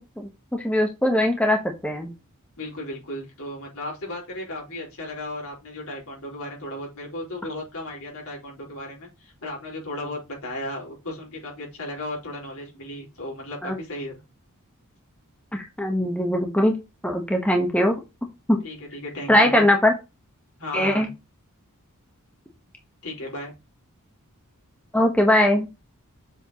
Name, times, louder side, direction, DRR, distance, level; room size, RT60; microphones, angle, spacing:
voice 1, 0.2-2.1 13.6-13.8 15.5-16.7 17.0-17.9 18.5-18.6 19.3-19.9 20.7-21.1 24.9-25.7, left 1 dB, 5° left, 2 dB, 1.2 m, -21 dB
voice 2, 2.6-14.2 18.6-19.7 20.6-21.1 23.0-23.5, left 1 dB, 70° left, -2 dB, 4.7 m, -35 dB
7.4 x 6.2 x 3.0 m, 0.25 s
head